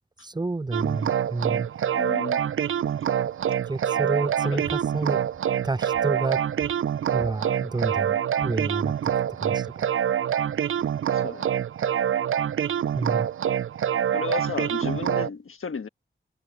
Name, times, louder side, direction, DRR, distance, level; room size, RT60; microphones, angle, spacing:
voice 1, 0.2-1.7 3.7-5.2 5.6-6.4 7.1-9.1 9.4-9.9 12.9-13.3, right 3 dB, 20° right, 0.6 m, -29 dB
sound 1, 0.7-15.3, right 9 dB, 75° right, 0.4 m, -26 dB
voice 2, 2.0-2.4 4.4-4.6 10.8-11.5 14.1-15.9, left 5 dB, 80° left, 1.4 m, -33 dB
cardioid pair, 55°, 21 cm